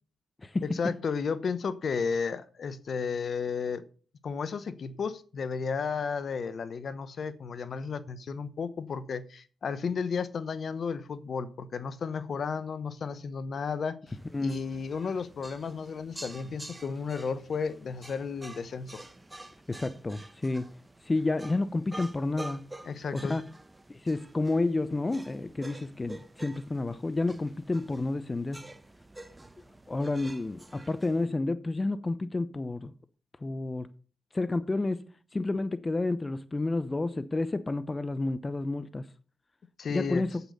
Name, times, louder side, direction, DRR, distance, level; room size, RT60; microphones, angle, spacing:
voice 1, 0.6-3.8 4.2-14.0 14.4-19.0 22.8-23.4 39.8-40.2, left 5 dB, 55° left, 0.9 m, -33 dB
sound 1, 14.1-31.2, right 1 dB, 20° right, 1.1 m, -48 dB
voice 2, 19.7-20.7 21.0-22.6 23.1-23.4 23.9-28.6 29.9-32.9 33.4-33.9 34.3-35.0 35.3-39.0 39.9-40.3, left 2 dB, 30° left, 0.7 m, -30 dB
8.1 x 8.1 x 5.5 m
hypercardioid pair, 45°, 0 cm